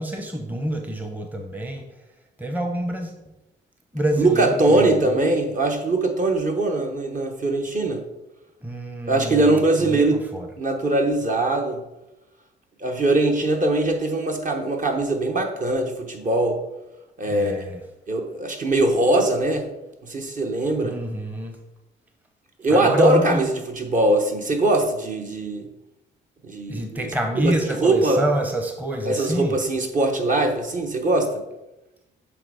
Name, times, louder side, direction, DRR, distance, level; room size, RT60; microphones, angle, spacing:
voice 1, 0.0-1.9 2.4-3.2 3.9-5.2 8.6-10.5 17.3-17.8 20.8-21.6 22.7-23.4 26.7-29.6, right 1 dB, 10° right, 4 dB, 0.8 m, -27 dB
voice 2, 4.2-8.0 9.1-10.2 10.6-11.8 12.8-16.6 17.2-17.5 18.1-19.7 20.0-21.0 22.6-25.7 26.4-27.1 27.3-27.5 27.8-28.2 29.1-31.4, right 2 dB, 40° right, 3 dB, 1.1 m, -21 dB
7.7 x 3.6 x 4.9 m, 0.96 s
cardioid pair, 90°, 20 cm